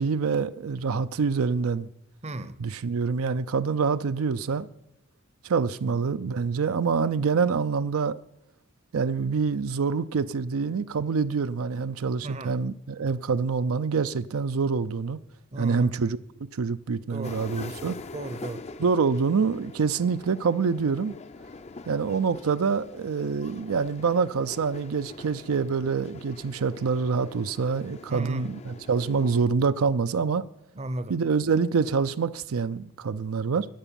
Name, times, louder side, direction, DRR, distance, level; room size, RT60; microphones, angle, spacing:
voice 1, 0.0-1.9 2.6-4.7 5.4-8.2 8.9-15.2 15.6-16.2 16.5-18.0 18.8-21.1 21.9-30.4 31.1-33.7, right 5 dB, 85° right, 0.5 m, -26 dB
voice 2, 2.2-2.6 5.8-6.0 12.2-12.6 15.5-16.0 17.1-17.4 18.1-18.6 28.1-28.5 30.7-31.2, right 1 dB, 30° right, 0.6 m, -35 dB
sound 1, 17.2-29.5, left 3 dB, 30° left, 0.5 m, -44 dB
13.0 x 9.2 x 6.9 m
head